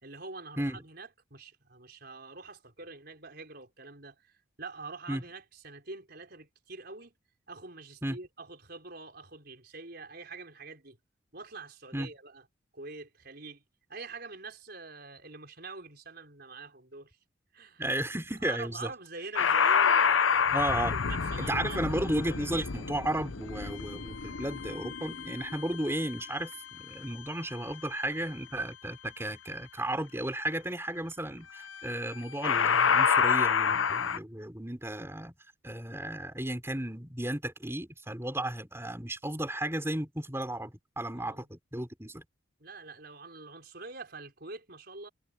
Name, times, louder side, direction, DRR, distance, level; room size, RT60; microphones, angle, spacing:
voice 1, 0.0-7.1 7.5-11.0 11.3-12.4 12.7-13.6 13.9-17.2 17.5-17.8 18.4-22.0 41.1-41.5 42.6-45.1, right 3 dB, 50° right, 5.2 m, -45 dB
voice 2, 17.8-18.9 20.5-21.0 21.4-35.3 35.6-42.2, right 1 dB, 15° right, 4.7 m, -34 dB
sound 1, 19.4-26.5 31.8-32.1 32.4-34.2, left 6 dB, 80° left, 0.9 m, -28 dB
head